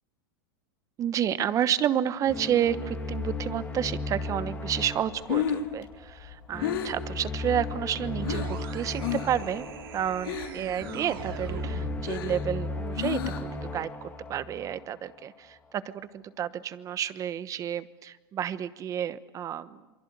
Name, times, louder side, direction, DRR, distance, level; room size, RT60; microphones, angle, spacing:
voice 1, 1.0-9.7 9.9-19.8, right 10 dB, 25° right, 15 dB, 1.1 m, -30 dB
sound 1, 2.3-15.4, left 3 dB, 15° left, 2.6 m, -36 dB
Breathing, 5.0-8.6 9.0-9.4 9.7-10.7 11.1-13.6, left 10 dB, 75° left, 3.4 m, -32 dB
sound 2, 8.0-12.2, right 9 dB, 75° right, 2.8 m, -41 dB
28.0 x 23.5 x 8.2 m, 1.2 s
supercardioid pair, 135°, 12 cm